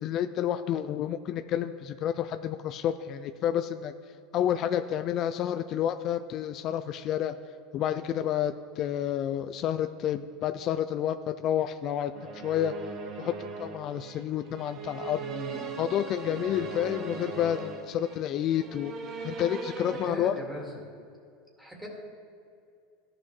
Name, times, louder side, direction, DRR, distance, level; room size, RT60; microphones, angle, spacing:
voice 1, 0.0-3.9 4.3-7.3 7.7-12.7 13.2-15.2 15.8-18.9 19.2-20.3, left 10 dB, 50° left, 9 dB, 0.3 m, -30 dB
sound 1, 12.2-20.1, right 4 dB, 45° right, 0.9 m, -39 dB
voice 2, 15.2-15.8 19.9-20.8 21.6-21.9, right 1 dB, 5° right, -1 dB, 2.1 m, -39 dB
13.5 x 5.8 x 3.2 m, 2.3 s
hypercardioid pair, 95°, 0 cm